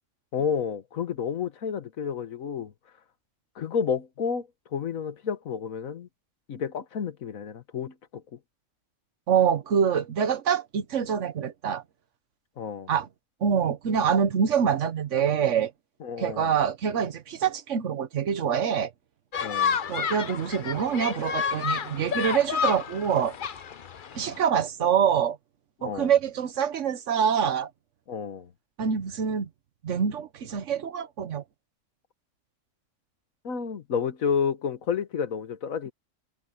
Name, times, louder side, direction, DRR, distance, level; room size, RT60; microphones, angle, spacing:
voice 1, 0.3-2.7 3.6-6.1 6.5-8.2 12.6-12.9 16.0-16.5 19.4-19.8 25.8-26.1 28.1-28.5 33.4-35.9, left 6 dB, 90° left, 1.7 m, -30 dB
voice 2, 9.3-11.8 12.9-13.1 13.4-15.7 16.2-18.9 19.9-23.3 24.1-25.4 25.8-27.7 28.8-29.5 29.8-31.4, right 7 dB, 65° right, 1.3 m, -25 dB
sound 1, 19.3-24.4, left 7 dB, 45° left, 0.8 m, -30 dB
omnidirectional pair, 1.4 m